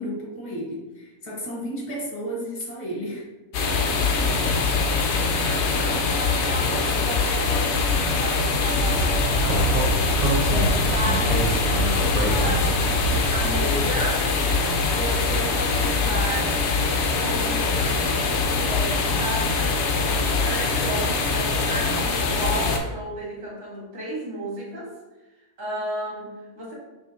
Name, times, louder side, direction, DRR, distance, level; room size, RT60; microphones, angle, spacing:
voice 1, 0.0-3.3, equal, 35° left, -3 dB, 1.0 m, -32 dB
sound 1, 3.5-22.8, left 4 dB, 65° left, 0.7 m, -23 dB
voice 2, 5.4-9.7 10.5-11.5 12.0-14.3 14.9-16.7 17.2-24.9 25.6-26.7, right 1 dB, 55° right, -5 dB, 1.6 m, -33 dB
Speech, 8.7-13.7, right 1 dB, 75° right, 1.3 m, -25 dB
5.4 x 2.7 x 2.7 m, 1.1 s
omnidirectional pair, 1.6 m